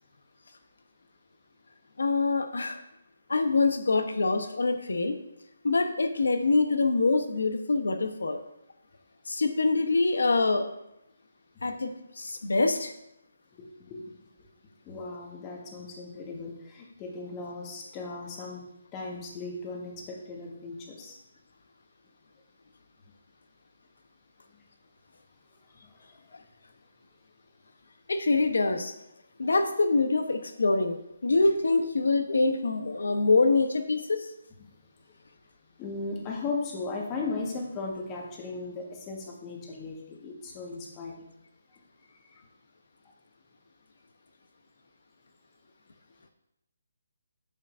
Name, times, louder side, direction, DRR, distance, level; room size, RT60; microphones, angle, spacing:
voice 1, 2.0-2.8 3.3-5.2 5.6-8.4 9.3-10.6 11.6-11.9 12.2-12.9 28.1-28.9 29.4-31.0 31.2-34.3, left 3 dB, 80° left, 8 dB, 0.9 m, -25 dB
voice 2, 13.6-14.1 14.4-14.5 14.8-18.6 18.9-21.2 25.8-26.2 34.6-34.7 35.8-41.3 42.2-42.3, left 3 dB, 20° left, -1 dB, 1.4 m, -37 dB
8.9 x 6.5 x 2.6 m, 0.84 s
hypercardioid pair, 155°, 0 cm